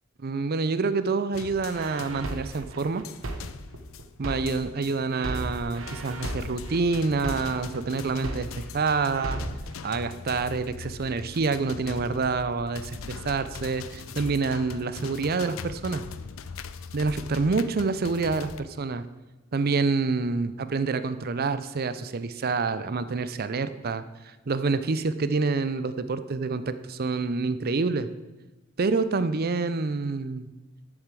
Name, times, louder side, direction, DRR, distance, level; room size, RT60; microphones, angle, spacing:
voice 1, 0.2-3.0 4.2-9.4 9.8-16.0 16.9-18.5 18.8-19.0 19.5-28.1 28.8-30.5, right 4 dB, 50° right, 13 dB, 0.6 m, -27 dB
sound 1, 1.3-18.6, left 5 dB, 75° left, 0.6 m, -41 dB
sound 2, 1.8-4.8 5.1-8.8 9.1-9.7, right 1 dB, 70° right, 1.2 m, -35 dB
8.1 x 7.2 x 7.5 m, 1.1 s
head